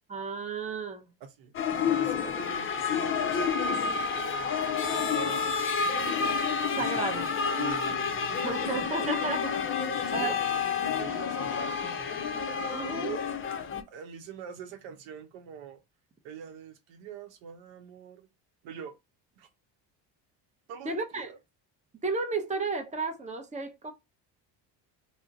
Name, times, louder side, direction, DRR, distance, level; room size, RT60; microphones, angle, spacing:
voice 1, 0.1-1.1 6.8-7.3 8.4-9.5 10.1-10.3 12.7-13.3 20.8-21.4 22.0-23.9, right 3 dB, 15° right, 0.7 m, -33 dB
voice 2, 1.2-1.5 1.9-3.6 4.1-5.4 5.7-6.0 6.8-7.2 7.6-8.7 9.0-9.1 9.8-12.2 13.9-15.8 16.2-18.3 18.6-19.0 19.4-19.5 20.7-21.4, right 8 dB, 75° right, 0.7 m, -45 dB
sound 1, 1.5-13.8, left 6 dB, 30° left, 0.5 m, -29 dB
2.4 x 2.1 x 3.8 m
supercardioid pair, 80°, 47 cm